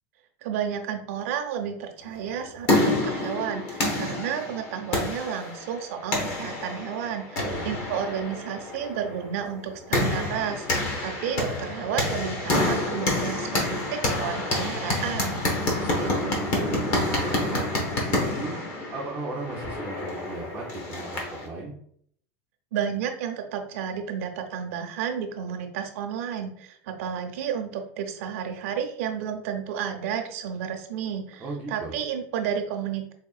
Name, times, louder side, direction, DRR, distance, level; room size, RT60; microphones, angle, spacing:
voice 1, 0.4-15.4 22.7-33.1, right 8 dB, 65° right, 5 dB, 0.6 m, -32 dB
sound 1, 2.2-21.5, left 2 dB, 35° left, 0.9 m, -28 dB
voice 2, 7.4-7.8 15.8-18.5 18.9-21.7 31.4-32.0, right 3 dB, 15° right, -3 dB, 0.4 m, -36 dB
3.5 x 3.5 x 2.4 m, 0.64 s
supercardioid pair, 175°, 8 cm